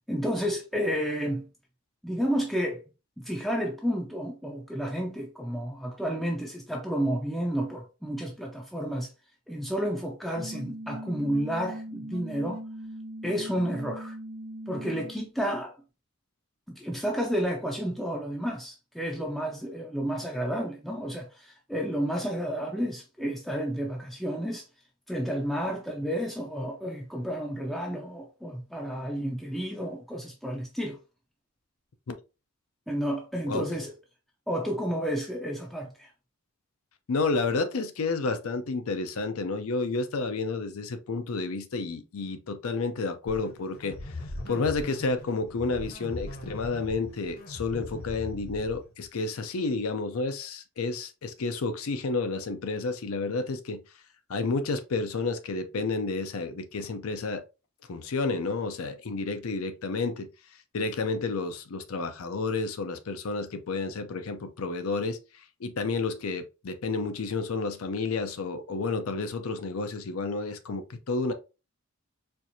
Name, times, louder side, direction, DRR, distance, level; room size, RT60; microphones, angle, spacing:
voice 1, 0.1-1.5 2.0-2.8 3.2-9.1 9.5-12.6 13.2-14.1 14.7-15.7 16.7-24.7 25.1-31.0 32.9-33.9 34.5-36.1, equal, ahead, 0.4 m, -31 dB
sound 1, 10.4-15.3, right 1 dB, 70° right, 0.5 m, -40 dB
voice 2, 37.1-44.2 44.5-53.8 54.3-57.4 57.9-60.3 60.7-65.2 65.6-71.3, left 3 dB, 75° left, 0.5 m, -30 dB
sound 2, 43.3-49.1, left 2 dB, 45° left, 0.8 m, -40 dB
4.4 x 2.5 x 2.7 m
head